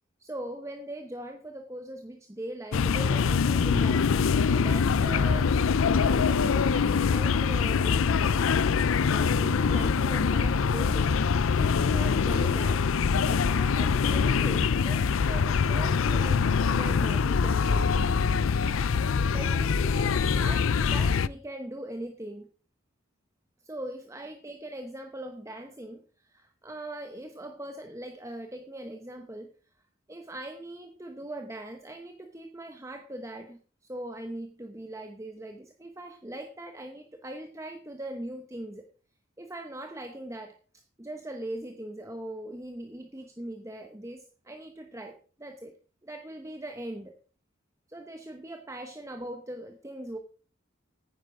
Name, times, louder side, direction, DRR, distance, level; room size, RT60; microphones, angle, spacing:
voice 1, 0.2-4.1 4.5-8.4 9.0-11.2 11.6-12.8 13.2-17.9 19.3-22.5 23.6-29.5 30.1-33.6 33.9-38.8 39.4-40.5 41.0-45.7 46.0-47.1 47.9-50.2, right 1 dB, 15° right, 5 dB, 0.9 m, -41 dB
sound 1, 2.7-21.3, left 5 dB, 75° left, 0.5 m, -24 dB
10.0 x 9.7 x 4.9 m, 0.39 s
head